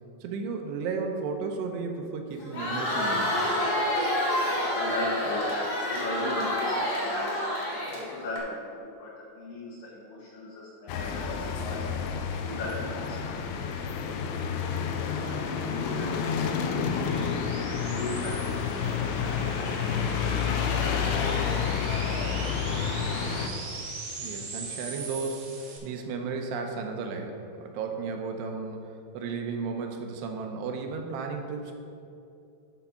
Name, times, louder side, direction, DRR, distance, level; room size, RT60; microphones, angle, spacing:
voice 1, 0.2-3.4 24.2-31.7, right 4 dB, 85° right, 3 dB, 2.9 m, -34 dB
Crowd, 2.4-8.4, left 1 dB, 40° left, 1.8 m, -28 dB
voice 2, 4.5-11.9 12.4-13.4 15.0-17.3 17.8-20.0 20.2-21.3 21.6-21.9 22.2-22.4 22.7-23.7, left 2 dB, 65° left, -6 dB, 1.9 m, -39 dB
sound 1, 10.9-23.5, left 6 dB, 85° left, 2.6 m, -29 dB
sound 2, 14.5-25.8, right 3 dB, 65° right, 2.2 m, -41 dB
11.5 x 4.0 x 5.6 m, 2.6 s
omnidirectional pair, 4.8 m